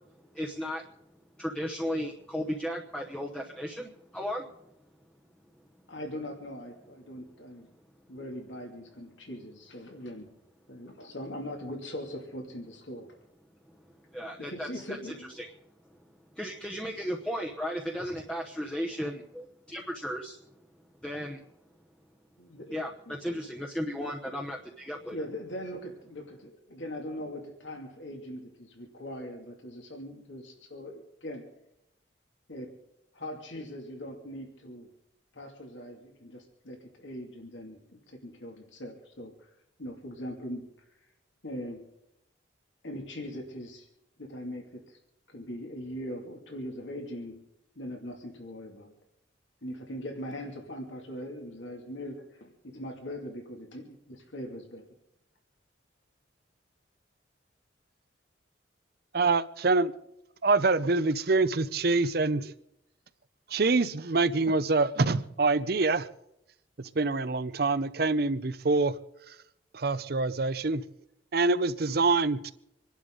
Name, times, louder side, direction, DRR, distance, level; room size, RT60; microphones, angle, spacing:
voice 1, 0.3-0.8 1.4-4.5 14.1-15.0 15.4-15.5 16.4-20.4 21.0-21.4 22.7-25.1, equal, 5° left, 1.0 m, -35 dB
voice 2, 5.9-7.7 8.1-10.3 10.7-13.1 14.5-15.3 22.4-22.8 23.1-23.4 25.1-31.4 32.5-32.7 33.1-34.9 35.3-39.5 39.8-40.6 41.4-41.8 42.8-43.9 44.2-45.0 45.3-47.4 47.8-48.9 49.6-54.8, equal, 75° left, 2.7 m, -41 dB
voice 3, 59.1-59.9 60.4-62.5 63.5-66.1 66.8-69.0 69.7-70.8 71.3-72.5, right 3 dB, 50° right, 0.7 m, -25 dB
27.0 x 11.5 x 3.9 m
head